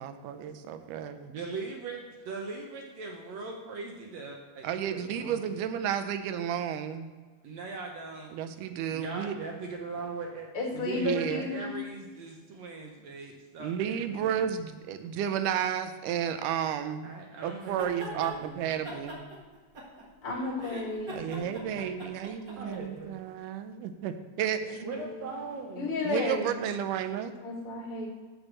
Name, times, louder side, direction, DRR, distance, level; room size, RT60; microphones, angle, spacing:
voice 1, 0.0-1.3 4.6-7.1 8.3-9.4 10.9-11.5 13.6-17.2 17.4-19.2 21.1-24.6 26.0-27.3, right 9 dB, 90° right, 9 dB, 2.2 m, -32 dB
voice 2, 0.8-5.4 7.4-8.4 8.9-14.4 17.0-18.7 21.1-22.0 22.6-23.2 24.8-25.9 27.7-27.8, right 4 dB, 70° right, 1 dB, 1.8 m, -40 dB
voice 3, 10.5-11.7 20.2-21.2 24.7-25.2 25.7-26.5 27.4-28.1, left 3 dB, 45° left, -3 dB, 2.6 m, -33 dB
sound 1, 17.6-18.3 18.8-20.2 20.6-22.8, equal, 45° right, 1.9 m, -41 dB
6.8 x 5.4 x 7.3 m, 1.4 s
omnidirectional pair, 3.6 m